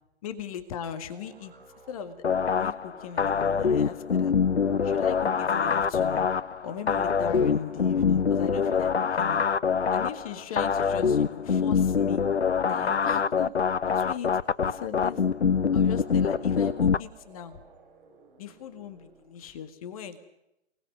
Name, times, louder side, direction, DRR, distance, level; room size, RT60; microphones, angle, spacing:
voice 1, 0.2-1.5 1.9-2.2 2.6-4.3 4.8-6.3 6.6-9.4 9.9-12.2 12.7-13.5 13.8-14.3 14.6-15.2 15.7-17.6 18.4-20.2, left 7 dB, 30° left, 10 dB, 1.9 m, -38 dB
sound 1, 1.1-19.5, right 4 dB, 50° right, 7.9 m, -54 dB
sound 2, 2.2-17.0, left 6 dB, 75° left, 0.8 m, -25 dB
29.5 x 19.5 x 6.3 m, 0.85 s
figure-of-eight pair, 130°, 33 cm